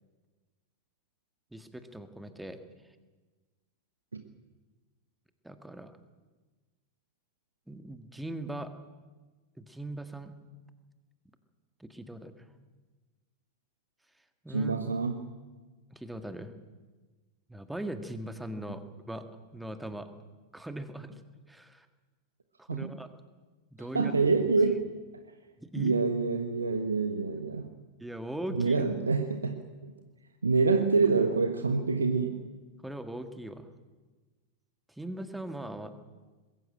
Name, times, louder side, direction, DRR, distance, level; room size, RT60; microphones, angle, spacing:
voice 1, 1.5-2.6 5.4-6.0 7.7-8.7 9.6-10.4 11.8-12.5 14.4-14.7 15.9-16.5 17.5-19.2 19.5-20.1 20.5-21.2 21.5-21.9 22.6-23.1 23.7-24.1 25.6-26.0 28.0-28.7 32.8-33.7 34.9-35.9, right 1 dB, 5° right, 9 dB, 1.7 m, -40 dB
voice 2, 14.5-15.3 22.7-23.0 23.9-24.9 25.7-27.7 28.5-29.9 30.4-32.4, right 4 dB, 75° right, 7 dB, 1.2 m, -27 dB
21.0 x 15.0 x 9.0 m, 1.3 s
figure-of-eight pair, 90°, 0 cm